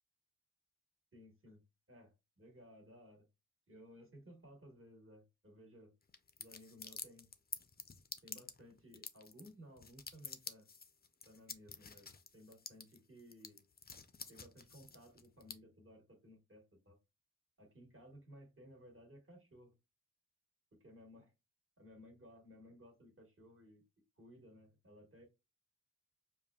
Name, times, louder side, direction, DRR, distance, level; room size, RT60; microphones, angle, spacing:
voice 1, 1.1-1.6 1.9-3.3 3.7-5.9 6.4-7.3 8.2-10.7 11.2-13.6 14.3-17.0 17.6-19.7 20.7-21.3 21.8-23.8 24.2-25.3, equal, 40° right, 1 dB, 1.4 m, -59 dB
sound 1, 6.1-15.5, left 5 dB, 30° left, 0.5 m, -49 dB
5.3 x 2.3 x 2.3 m, 0.24 s
cardioid pair, 60°, 32 cm